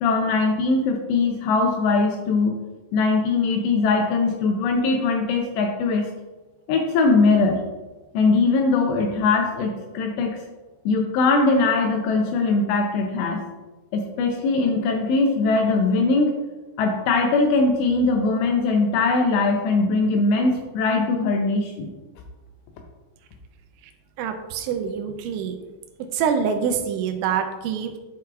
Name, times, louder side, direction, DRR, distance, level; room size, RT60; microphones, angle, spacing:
voice 1, 0.0-2.5 2.9-6.1 6.7-7.6 8.1-10.4 10.9-13.4 13.9-16.3 16.8-21.9, left 3 dB, 85° left, 3 dB, 2.6 m, -21 dB
voice 2, 24.2-25.6 26.1-28.0, right 7 dB, 90° right, 5 dB, 3.0 m, -25 dB
11.5 x 4.7 x 2.3 m, 1.2 s
omnidirectional pair, 5.3 m